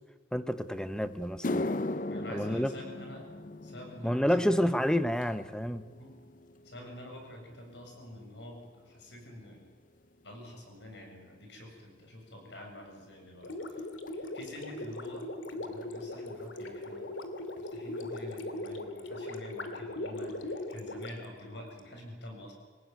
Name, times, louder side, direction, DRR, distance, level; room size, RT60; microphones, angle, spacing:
voice 1, 0.3-1.7 2.3-2.7 4.0-5.8, equal, 5° left, 11 dB, 0.9 m, -29 dB
sound 1, 0.7-0.8 1.2-9.7 10.0-10.5 11.2-11.3 14.1-14.2 15.8-15.9 16.1-16.3 16.6-17.1 17.6-17.7 18.2-18.3, left 2 dB, 45° left, 0.7 m, -39 dB
voice 2, 2.1-3.2 3.6-4.7 6.0-6.1 6.6-8.6 8.9-9.6 10.2-13.9 14.1-15.2 15.6-17.0 17.6-22.5, left 1 dB, 70° left, 2 dB, 7.6 m, -47 dB
Gurgling, 13.4-21.8, left 1 dB, 90° left, 2.5 m, -39 dB
26.0 x 18.0 x 9.5 m, 1.4 s
head